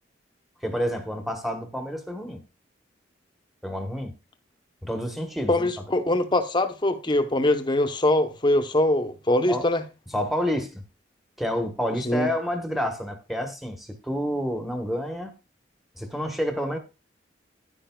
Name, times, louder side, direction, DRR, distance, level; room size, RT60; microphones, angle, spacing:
voice 1, 0.6-2.4 3.6-4.1 4.8-5.7 9.5-9.6 10.1-10.9 11.4-15.3 16.0-16.8, equal, ahead, 1.0 m, -29 dB
voice 2, 5.5-9.8 12.0-12.3, left 1 dB, 25° left, 0.8 m, -23 dB
10.0 x 10.0 x 2.2 m
head